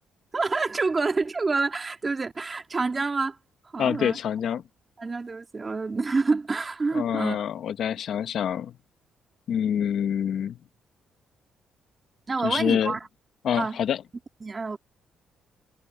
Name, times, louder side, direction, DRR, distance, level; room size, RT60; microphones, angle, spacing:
voice 1, 0.3-3.4 3.7-4.2 5.0-7.4 12.3-13.0 13.6-13.8 14.4-14.8, right 4 dB, 30° right, 2.0 m, -27 dB
voice 2, 3.8-4.6 6.9-8.7 9.5-10.6 12.4-13.0 13.4-14.0, left 9 dB, 65° left, 1.3 m, -26 dB
cardioid pair, 90°, 0 cm